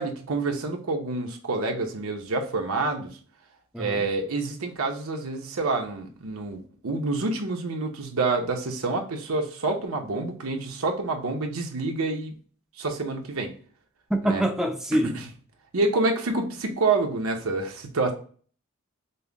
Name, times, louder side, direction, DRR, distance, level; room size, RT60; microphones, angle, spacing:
voice 1, 0.0-3.2 3.8-12.3 12.8-13.5 14.2-14.4 14.9-15.3 15.7-18.1, right 3 dB, 90° right, 3 dB, 0.9 m, -27 dB
voice 2, 3.7-4.0 14.1-15.2, right 1 dB, ahead, 2 dB, 0.4 m, -25 dB
5.4 x 2.1 x 3.4 m, 0.43 s
head